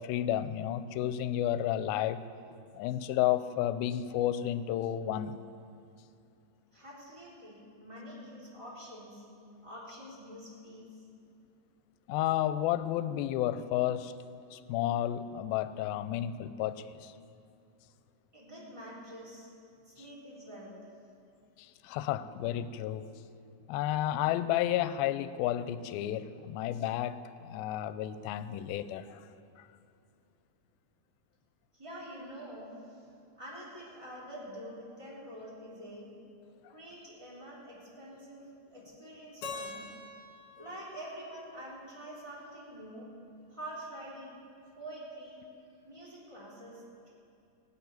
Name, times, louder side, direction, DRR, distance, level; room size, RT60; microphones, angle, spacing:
voice 1, 0.0-2.2 2.7-5.4 12.1-14.1 14.5-17.1 21.6-23.0 23.7-27.2 27.4-29.2 29.6-29.7, left 12 dB, 85° left, 14 dB, 2.4 m, -31 dB
voice 2, 6.7-9.2 9.6-11.0 18.3-19.5 19.8-20.7 31.7-33.1 33.4-36.1 36.7-38.4 38.7-39.8 40.6-43.1 43.5-44.3 44.8-45.4 45.8-47.1, right 1 dB, 10° right, -6 dB, 3.2 m, -46 dB
Keyboard (musical), 39.4-42.4, left 4 dB, 65° left, 2.9 m, -45 dB
16.5 x 7.2 x 9.5 m, 2.5 s
omnidirectional pair, 4.2 m